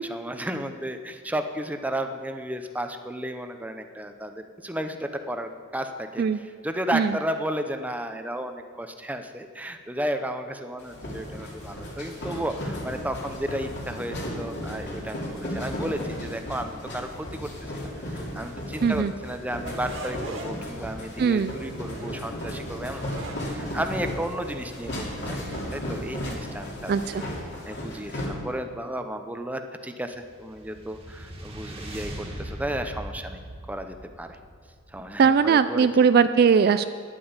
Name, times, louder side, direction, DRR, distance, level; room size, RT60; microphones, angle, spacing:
voice 1, 0.0-17.5 18.0-23.1 23.4-25.4 25.7-26.9 27.2-27.3 27.7-33.4 33.7-34.4 34.9-35.9, right 1 dB, 5° right, 7 dB, 0.6 m, -33 dB
sound 1, 10.8-28.2, equal, 55° left, 3.1 m, -35 dB
voice 2, 18.8-19.1 21.2-21.5 26.9-27.2 35.2-36.8, right 6 dB, 45° right, 12 dB, 0.3 m, -20 dB
sound 2, 19.6-26.5, right 1 dB, 60° right, 2.2 m, -42 dB
sound 3, 30.1-35.6, right 1 dB, 25° right, 1.8 m, -40 dB
11.0 x 8.6 x 7.3 m, 2.2 s
head